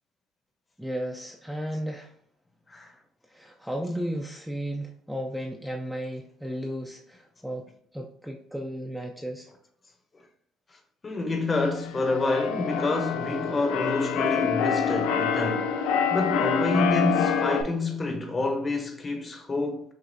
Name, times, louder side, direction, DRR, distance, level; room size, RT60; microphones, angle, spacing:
voice 1, 0.8-2.1 3.3-9.5, equal, ahead, 0.4 m, -34 dB
voice 2, 11.0-15.7 16.1-19.8, left 2 dB, 20° left, 0.7 m, -28 dB
Keyboard (musical), 11.7-17.6, left 7 dB, 90° left, 0.4 m, -26 dB
6.0 x 2.4 x 2.6 m
cardioid pair, 140°, 0 cm